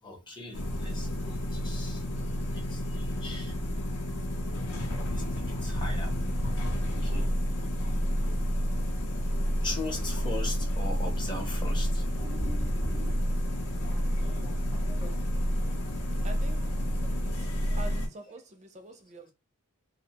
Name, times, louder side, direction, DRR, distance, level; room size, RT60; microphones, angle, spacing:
voice 1, 0.0-3.6 5.1-6.3 6.9-7.3 9.6-13.2 14.8-15.1, left 2 dB, 20° left, 0.6 m, -39 dB
sound 1, 0.5-18.1, equal, 75° left, 0.6 m, -30 dB
voice 2, 14.2-14.6 16.2-16.8 17.2-19.3, right 1 dB, 30° right, 0.5 m, -46 dB
2.4 x 2.1 x 2.8 m
head